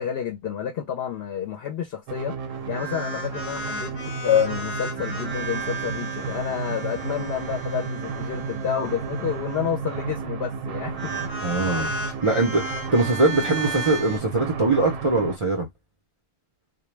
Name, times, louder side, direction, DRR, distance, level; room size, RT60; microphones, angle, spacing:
voice 1, 0.0-3.9 4.2-11.6, left 9 dB, 65° left, 0.7 m, -29 dB
sound 1, 2.1-15.4, right 5 dB, 85° right, 1.0 m, -33 dB
sound 2, 2.7-10.0 10.9-14.2, right 2 dB, 10° left, 0.7 m, -35 dB
voice 2, 11.4-11.9 12.2-15.7, right 2 dB, 45° right, 0.4 m, -22 dB
2.2 x 2.1 x 3.1 m
omnidirectional pair, 1.3 m